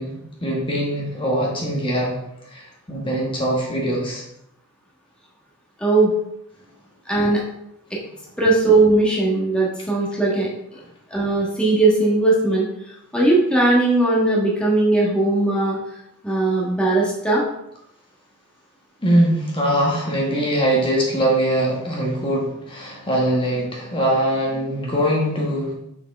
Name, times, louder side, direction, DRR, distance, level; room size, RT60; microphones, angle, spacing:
voice 1, 0.0-2.2 2.5-4.2 19.0-25.7, right 1 dB, 25° left, -2 dB, 1.4 m, -22 dB
voice 2, 7.1-7.4 8.4-10.5 11.1-12.6 13.1-15.8 16.2-17.4, right 2 dB, 5° left, -4 dB, 1.4 m, -18 dB
6.4 x 6.4 x 3.5 m, 0.77 s
head